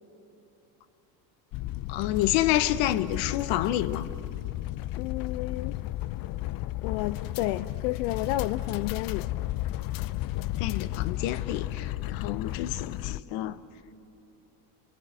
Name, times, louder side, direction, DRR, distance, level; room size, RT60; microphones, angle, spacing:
sound 1, 1.5-13.2, left 16 dB, 45° left, 0.5 m, -33 dB
voice 1, 1.9-4.1 10.6-13.6, left 13 dB, 70° left, 1.1 m, -28 dB
voice 2, 5.0-5.8 6.8-9.3, left 16 dB, 90° left, 0.7 m, -31 dB
29.0 x 17.5 x 7.9 m
supercardioid pair, 95°, 47 cm